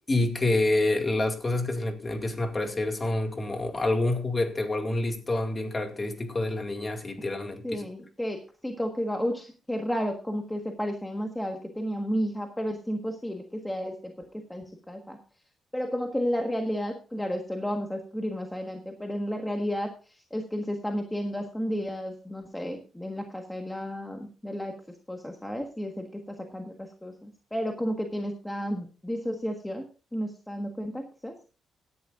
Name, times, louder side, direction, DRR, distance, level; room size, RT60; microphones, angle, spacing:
voice 1, 0.1-7.8, left 2 dB, 25° left, 4 dB, 2.2 m, -27 dB
voice 2, 7.6-15.2 15.7-19.9 20.3-31.3, equal, 5° left, 2 dB, 1.5 m, -32 dB
17.0 x 11.0 x 2.6 m, 0.35 s
cardioid pair, 130°, 0 cm